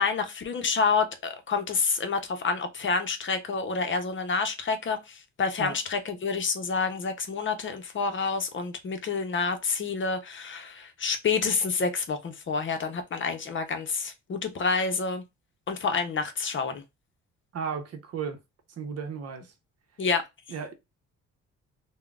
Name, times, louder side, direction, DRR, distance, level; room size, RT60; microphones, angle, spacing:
voice 1, 0.0-15.2 15.7-16.8 20.0-20.2, left 5 dB, 40° left, 0.7 m, -28 dB
voice 2, 17.5-18.4 18.8-19.5 20.5-20.7, right 6 dB, 55° right, 0.8 m, -34 dB
3.6 x 2.2 x 2.3 m
cardioid pair, 90°, 30 cm